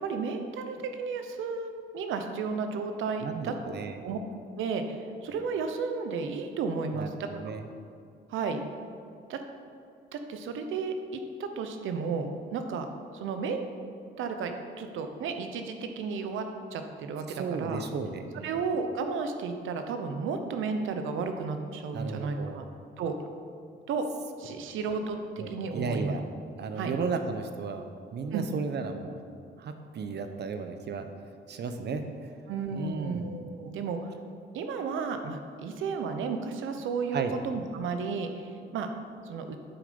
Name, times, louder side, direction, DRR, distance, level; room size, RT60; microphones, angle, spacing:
voice 1, 0.0-3.7 4.0-4.2 4.6-7.5 8.3-8.6 9.3-9.4 10.1-12.9 13.1-13.7 14.2-14.5 14.8-16.5 16.7-17.8 18.4-22.6 23.0-23.2 23.9-24.0 24.4-26.1 26.8-26.9 28.3-28.5 32.5-34.0 34.5-38.9 39.3-39.6, right 5 dB, 80° right, 6 dB, 0.9 m, -33 dB
voice 2, 3.2-3.9 6.9-7.7 17.3-18.5 21.9-22.6 25.4-26.3 26.6-29.2 29.6-31.1 31.5-32.3 32.7-33.3 37.1-37.3, right 5 dB, 60° right, 7 dB, 0.9 m, -34 dB
9.2 x 7.6 x 5.3 m, 2.4 s
cardioid pair, 90°, 20 cm